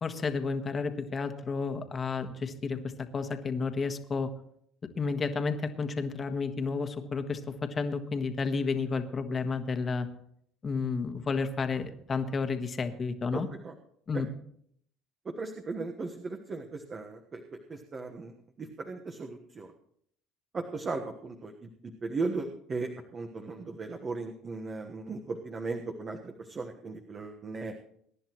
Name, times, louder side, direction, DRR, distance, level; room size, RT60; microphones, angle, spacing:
voice 1, 0.0-2.8 3.1-4.3 5.0-10.1 10.6-13.5 14.1-14.3, left 4 dB, 30° left, 7 dB, 1.5 m, -31 dB
voice 2, 13.3-13.7 14.1-14.2 15.2-17.4 17.7-18.3 18.6-19.7 20.5-27.7, right 3 dB, 30° right, 3 dB, 1.3 m, -37 dB
23.0 x 10.5 x 3.1 m, 0.67 s
supercardioid pair, 100°, 0 cm